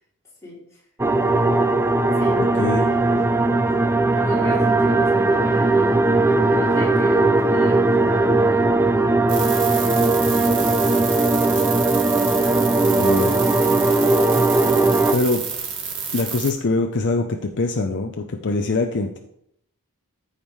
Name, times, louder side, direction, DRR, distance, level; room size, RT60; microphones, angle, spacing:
voice 1, 0.4-0.8 2.2-3.6 4.1-6.0 6.5-9.7 10.0-11.3, left 1 dB, 15° left, -6 dB, 3.1 m, -36 dB
sound 1, 1.0-15.1, right 2 dB, 10° right, 0.4 m, -18 dB
voice 2, 2.6-2.9 13.0-13.5 15.1-15.4 16.1-19.2, left 3 dB, 50° left, 4 dB, 0.6 m, -23 dB
sound 2, 9.3-16.5, right 6 dB, 55° right, 1.7 m, -29 dB
14.0 x 5.1 x 3.2 m, 0.73 s
head